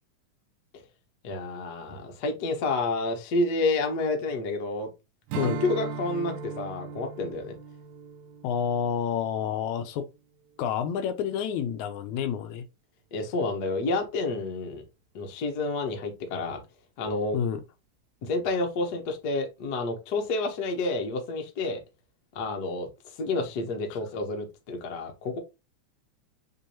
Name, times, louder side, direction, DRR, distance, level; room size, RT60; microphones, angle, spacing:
voice 1, 1.2-4.9 5.4-7.6 13.1-14.8 15.1-16.6 17.0-17.4 18.2-21.8 22.3-22.9 23.2-25.4, left 3 dB, 65° left, 1.0 m, -29 dB
Strum, 5.3-10.0, right 6 dB, 85° right, 1.9 m, -38 dB
voice 2, 8.4-10.1 10.6-12.7 17.3-17.6 23.9-24.0, left 8 dB, 80° left, 1.9 m, -29 dB
5.9 x 3.0 x 2.8 m
omnidirectional pair, 3.4 m